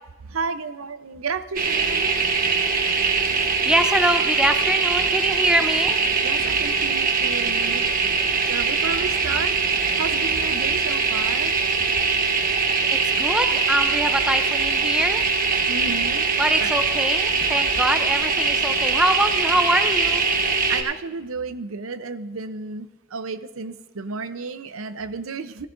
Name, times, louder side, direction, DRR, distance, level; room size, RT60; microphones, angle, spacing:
voice 1, 0.3-2.1 6.2-7.8 8.5-9.6 10.0-11.5 15.7-16.3 16.6-16.7 20.7-25.7, right 4 dB, 85° right, 11 dB, 0.7 m, -32 dB
sound 1, 1.6-20.8, right 4 dB, 45° right, 1.1 m, -22 dB
voice 2, 3.7-6.0 13.2-15.3 16.4-20.2, right 1 dB, 5° right, 7 dB, 0.5 m, -23 dB
16.5 x 14.0 x 2.6 m, 1.2 s
head